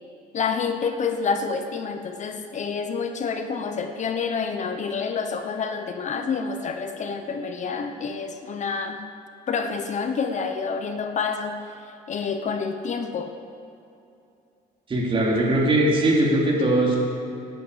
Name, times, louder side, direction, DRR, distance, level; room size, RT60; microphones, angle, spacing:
voice 1, 0.3-9.1 9.5-13.3, left 5 dB, 45° left, 7 dB, 0.9 m, -28 dB
voice 2, 14.9-17.0, right 1 dB, 30° right, -3 dB, 3.7 m, -20 dB
17.0 x 11.5 x 5.2 m, 2.7 s
cardioid pair, 110°, 17 cm